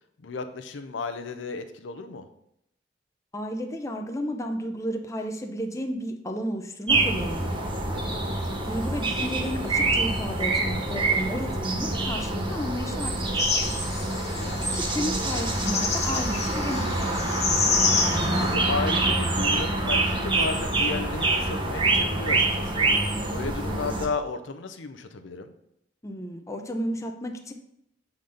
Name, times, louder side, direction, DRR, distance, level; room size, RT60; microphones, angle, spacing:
voice 1, 0.2-2.3 12.9-13.1 14.3-14.6 18.4-25.5, left 3 dB, 70° left, 8 dB, 0.6 m, -34 dB
voice 2, 3.3-7.5 8.6-13.8 14.6-17.5 26.0-27.5, equal, 15° left, 4 dB, 0.6 m, -33 dB
sound 1, 6.9-24.0, right 2 dB, 25° right, 1.0 m, -26 dB
sound 2, 13.4-18.5, left 4 dB, 35° left, 0.9 m, -28 dB
7.1 x 4.0 x 5.0 m, 0.78 s
head